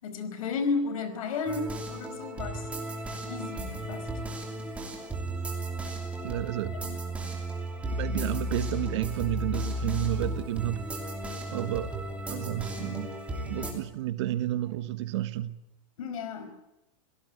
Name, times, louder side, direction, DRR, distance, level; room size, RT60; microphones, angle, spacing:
voice 1, 0.0-2.9 3.3-4.1 6.8-7.0 13.5-13.8 16.0-16.5, left 4 dB, 85° left, 5.2 m, -33 dB
sound 1, 1.5-13.7, right 1 dB, 5° right, 3.0 m, -35 dB
voice 2, 6.2-6.8 8.0-10.9 11.5-12.0 12.3-13.1 13.5-15.6, right 14 dB, 55° right, 1.4 m, -31 dB
26.5 x 17.5 x 9.4 m
supercardioid pair, 180°, 17 cm